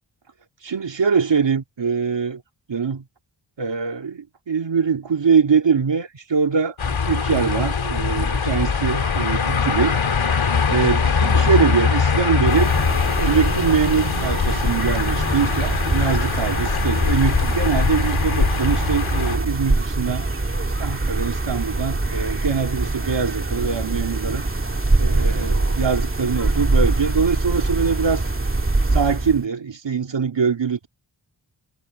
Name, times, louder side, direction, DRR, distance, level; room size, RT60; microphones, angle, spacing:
voice 1, 0.6-2.4 2.7-3.0 3.6-10.0 10.7-12.7 13.2-20.3 20.8-24.4 25.0-28.2 28.9-30.9, right 6 dB, 65° right, 2.3 m, -23 dB
sound 1, 6.8-19.4, left 5 dB, 85° left, 2.6 m, -22 dB
sound 2, 12.5-29.4, right 2 dB, 25° right, 2.2 m, -24 dB
wide cardioid pair, 60°, 46 cm